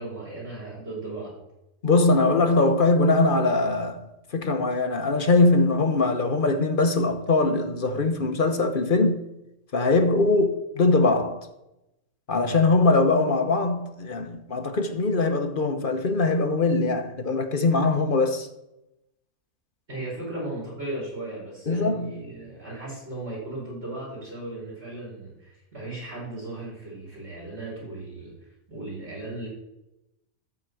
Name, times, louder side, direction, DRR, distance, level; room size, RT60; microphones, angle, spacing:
voice 1, 0.0-1.3 19.9-28.3 28.7-29.5, right 2 dB, 45° right, 5.2 m, -36 dB
voice 2, 1.8-4.1 4.3-9.2 9.7-11.5 12.3-18.5 21.7-22.2, left 3 dB, 40° left, 1.0 m, -22 dB
13.5 x 5.3 x 7.7 m
omnidirectional pair, 1.6 m